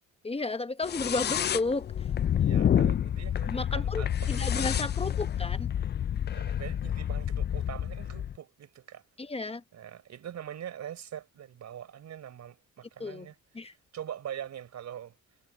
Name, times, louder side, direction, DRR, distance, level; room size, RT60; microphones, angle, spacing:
voice 1, 0.2-1.9 3.5-5.7 9.2-9.6 13.0-13.3 13.5-13.7, left 3 dB, 20° left, 1.0 m, -32 dB
sound 1, 0.8-8.4, left 9 dB, 35° left, 0.4 m, -29 dB
voice 2, 2.3-5.1 6.3-9.0 9.7-13.4 13.6-15.1, right 10 dB, 65° right, 4.5 m, -43 dB
cardioid pair, 90°, 30 cm